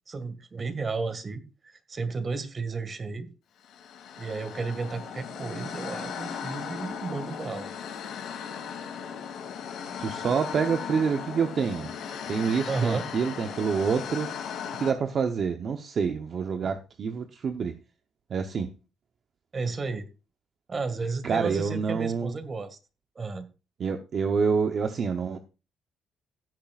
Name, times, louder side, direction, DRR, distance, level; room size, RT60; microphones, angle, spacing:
voice 1, 0.1-3.3 4.2-7.7 12.7-13.1 19.5-20.1 20.7-22.8 23.2-23.5, right 4 dB, 35° right, 2.0 m, -33 dB
sound 1, 3.6-14.9, left 7 dB, 80° left, 2.7 m, -37 dB
voice 2, 10.0-11.9 12.3-14.3 14.8-17.7 18.3-18.7 21.2-22.3 23.8-25.4, right 6 dB, 55° right, 1.0 m, -27 dB
16.5 x 8.8 x 2.5 m
cardioid pair, 90°, 0 cm